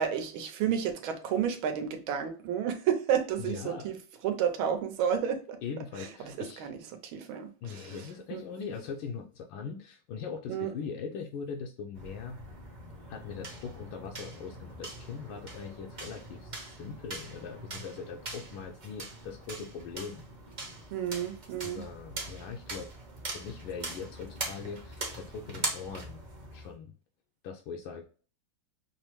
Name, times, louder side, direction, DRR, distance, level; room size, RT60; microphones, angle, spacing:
voice 1, 0.0-4.0 4.2-5.6 6.0-8.4 10.5-10.7 20.9-21.8, right 8 dB, 80° right, 1.5 m, -31 dB
voice 2, 3.4-3.9 5.6-6.7 7.6-12.4 13.1-20.2 21.6-22.9 23.3-26.2 26.5-26.9 27.4-28.0, left 6 dB, 80° left, 1.4 m, -41 dB
sound 1, 11.9-26.7, right 2 dB, 40° right, 0.6 m, -42 dB
5.4 x 2.0 x 3.0 m
omnidirectional pair, 2.3 m